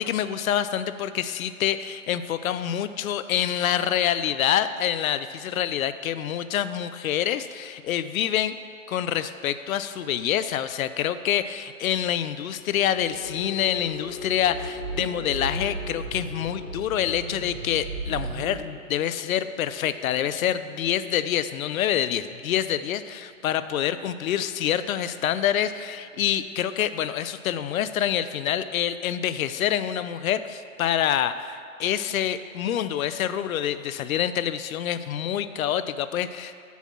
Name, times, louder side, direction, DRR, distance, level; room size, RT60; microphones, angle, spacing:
voice 1, 0.0-8.6 8.9-36.5, left 10 dB, 80° left, 13 dB, 0.5 m, -26 dB
sound 1, 12.2-28.4 28.8-29.1 29.4-29.6, left 4 dB, 50° right, 1.7 m, -45 dB
sound 2, 12.8-18.6, right 3 dB, 25° right, 0.7 m, -37 dB
7.0 x 4.3 x 6.1 m, 2.4 s
hypercardioid pair, 170°, 41 cm